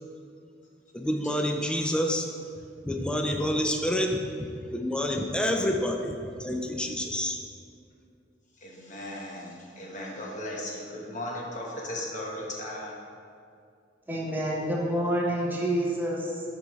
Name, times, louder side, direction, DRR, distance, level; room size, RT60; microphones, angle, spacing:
voice 1, 0.9-2.3 2.8-4.2 4.7-7.4, equal, 5° left, 3 dB, 0.4 m, -28 dB
voice 2, 8.6-12.9, left 1 dB, 45° left, -3 dB, 1.2 m, -37 dB
voice 3, 14.1-16.4, equal, 10° right, -3 dB, 0.8 m, -28 dB
8.0 x 5.3 x 3.1 m, 2.4 s
head